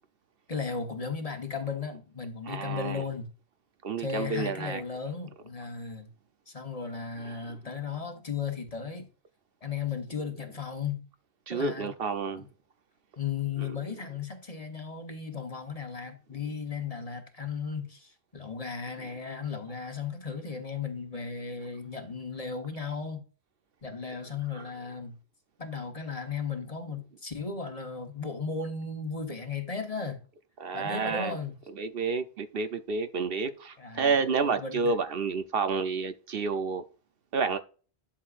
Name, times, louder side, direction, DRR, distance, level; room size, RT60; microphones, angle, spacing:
voice 1, 0.5-3.3 4.0-6.1 6.5-9.1 9.6-11.1 11.5-11.9 12.4-12.5 13.2-23.2 23.8-25.2 25.6-30.2 30.7-31.6 33.8-34.9, left 5 dB, 35° left, 1.3 m, -35 dB
voice 2, 2.5-3.0 3.8-4.8 11.5-12.4 30.6-31.3 31.8-36.8 37.3-37.6, right 4 dB, 65° right, 1.0 m, -30 dB
11.5 x 6.4 x 2.5 m
omnidirectional pair, 1.1 m